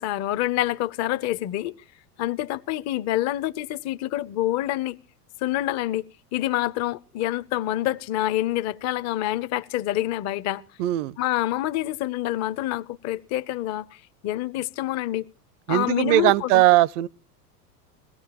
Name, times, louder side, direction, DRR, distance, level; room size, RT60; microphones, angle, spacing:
voice 1, 0.0-1.7 2.2-5.0 5.4-6.0 6.3-10.6 11.2-15.2 15.7-16.6, left 14 dB, 35° left, 0.6 m, -27 dB
voice 2, 10.8-11.2 15.7-17.1, right 16 dB, 55° right, 0.6 m, -19 dB
21.5 x 17.0 x 2.9 m
hypercardioid pair, 100°, 47 cm